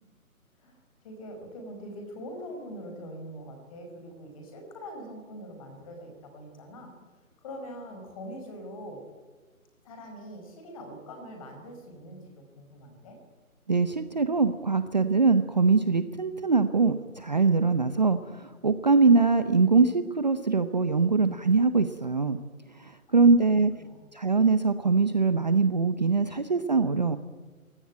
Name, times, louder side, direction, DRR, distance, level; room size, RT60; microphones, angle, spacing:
voice 1, 0.6-6.9 7.4-9.0 9.8-13.2 23.1-23.3 23.8-24.0, equal, 25° left, 5 dB, 5.2 m, -43 dB
voice 2, 13.7-22.4 22.8-23.7 24.1-27.2, right 4 dB, 30° right, 10 dB, 0.8 m, -23 dB
23.0 x 17.5 x 9.1 m, 1.4 s
hypercardioid pair, 165°, 43 cm